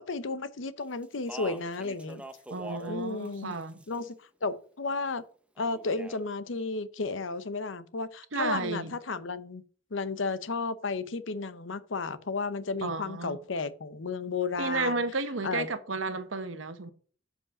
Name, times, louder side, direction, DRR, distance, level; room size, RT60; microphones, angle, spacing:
voice 1, 0.0-2.2 2.9-3.5 3.9-5.2 5.6-9.6 9.9-15.0 15.4-15.7, left 4 dB, 75° left, 0.8 m, -33 dB
Speech, 1.0-3.0 3.3-4.1 5.6-6.2, right 1 dB, 5° right, 0.6 m, -44 dB
voice 2, 2.5-3.8 8.3-8.9 12.8-13.4 14.6-16.9, right 3 dB, 85° right, 1.1 m, -32 dB
7.4 x 5.3 x 5.9 m
head